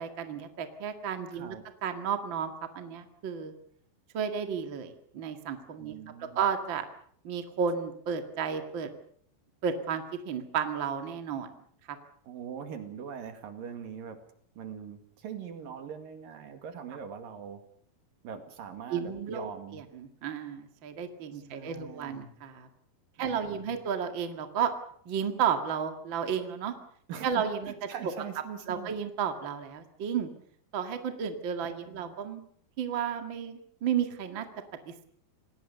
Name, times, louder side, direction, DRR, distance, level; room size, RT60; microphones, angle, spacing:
voice 1, 0.0-1.6 1.8-3.5 4.1-5.9 6.2-6.8 7.2-8.9 9.6-11.5 11.9-12.0 18.9-22.7 23.2-24.7 25.1-26.7 27.2-27.7 28.7-30.3 30.7-32.5 32.8-34.5 34.9-35.1, right 7 dB, 40° right, 6 dB, 2.2 m, -32 dB
voice 2, 5.8-6.4 12.3-14.2 14.6-17.6 18.2-19.8 21.3-22.3 23.2-23.7 27.1-27.3 27.7-29.0 31.7-32.1, right 7 dB, 65° right, 7 dB, 3.8 m, -42 dB
27.5 x 19.0 x 6.8 m, 0.62 s
omnidirectional pair, 4.4 m